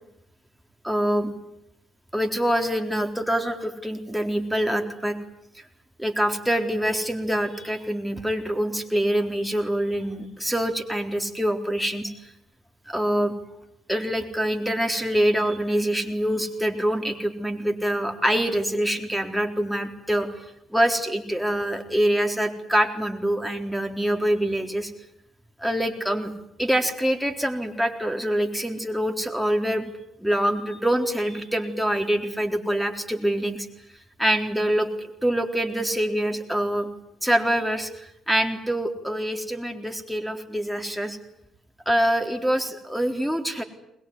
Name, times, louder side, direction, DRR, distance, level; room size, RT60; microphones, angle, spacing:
voice 1, 0.8-1.3 2.1-5.2 6.0-12.1 12.9-13.3 13.9-24.9 25.6-26.3 26.6-29.9 30.2-33.7 34.2-36.9 37.2-41.2 41.9-43.6, right 1 dB, ahead, 4 dB, 4.0 m, -25 dB
22.0 x 21.5 x 9.9 m, 0.78 s
supercardioid pair, 75°, 0 cm